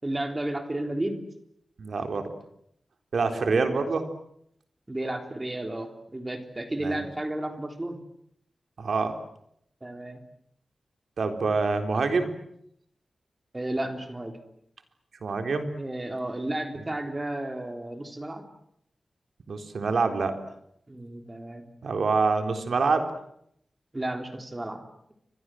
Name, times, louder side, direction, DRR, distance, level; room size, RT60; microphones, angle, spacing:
voice 1, 0.0-1.3 3.2-3.7 4.9-8.0 9.8-10.2 13.5-14.4 15.7-18.5 20.9-21.7 23.9-24.8, right 1 dB, 20° right, 6 dB, 3.6 m, -33 dB
voice 2, 1.8-2.3 3.1-4.0 6.8-7.0 8.8-9.1 11.2-12.3 15.2-15.7 19.5-20.3 21.8-23.1, right 4 dB, 65° right, 6 dB, 3.8 m, -26 dB
29.5 x 24.5 x 7.8 m, 0.72 s
wide cardioid pair, 150°, 0 cm